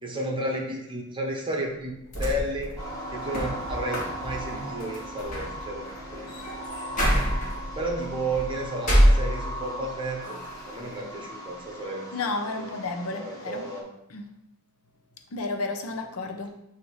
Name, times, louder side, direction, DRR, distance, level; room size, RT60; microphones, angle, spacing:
voice 1, 0.0-2.8 3.1-5.9 6.1-6.3 7.7-10.4 10.7-12.1 12.4-12.7 13.1-13.9, right 1 dB, 20° right, 0 dB, 1.0 m, -32 dB
sound 1, 1.8-9.8 10.2-11.0, equal, 35° left, 1.6 m, -27 dB
sound 2, 2.8-13.8, equal, 15° left, 1.2 m, -39 dB
voice 2, 12.1-13.7 14.1-14.2 15.3-16.6, left 3 dB, 70° left, 6 dB, 0.7 m, -32 dB
7.7 x 2.9 x 4.7 m, 0.83 s
head